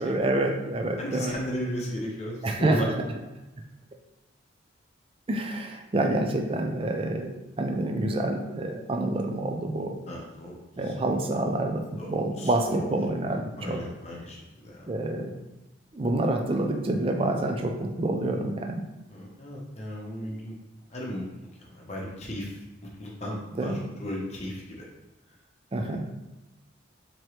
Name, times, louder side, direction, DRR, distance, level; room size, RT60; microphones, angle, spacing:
voice 1, 0.0-1.4 2.4-3.0 5.3-10.0 10.8-13.8 14.9-15.4 15.9-18.8 20.2-20.4 23.6-23.8 25.7-26.1, right 2 dB, 30° right, 3 dB, 0.4 m, -27 dB
voice 2, 1.0-2.9 10.1-10.6 11.0-11.2 12.0-12.1 12.4-12.9 13.6-14.9 19.1-20.6 20.9-21.2 21.6-22.6 23.0-24.9, equal, 35° left, -2 dB, 0.9 m, -35 dB
4.4 x 2.9 x 3.2 m, 1.0 s
head